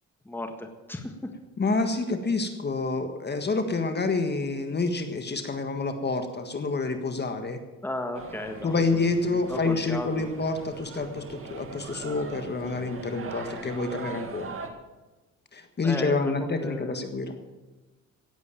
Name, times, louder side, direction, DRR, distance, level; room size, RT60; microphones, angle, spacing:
voice 1, 0.2-1.3 7.8-8.7 9.5-10.3 15.8-16.3 16.6-17.0, left 1 dB, 5° left, 5 dB, 1.6 m, -34 dB
voice 2, 1.6-7.6 8.6-14.5 15.5-17.3, left 3 dB, 35° left, 7 dB, 1.6 m, -28 dB
sound 1, 8.1-14.7, right 4 dB, 45° right, 2.0 m, -41 dB
17.0 x 8.3 x 7.5 m, 1.2 s
cardioid pair, 90°, 30 cm